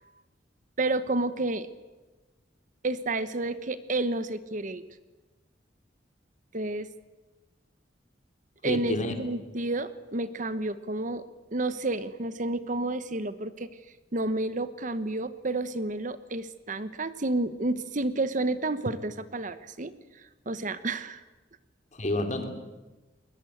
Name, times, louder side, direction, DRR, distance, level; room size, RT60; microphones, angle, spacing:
voice 1, 0.8-1.7 2.8-4.9 6.5-6.9 8.6-11.2 11.5-13.7 14.1-19.9 20.5-21.2, right 2 dB, 45° right, 14 dB, 1.0 m, -30 dB
voice 2, 8.6-9.1 21.9-22.5, left 2 dB, 40° left, 6 dB, 2.9 m, -29 dB
21.5 x 20.0 x 9.3 m, 1.2 s
head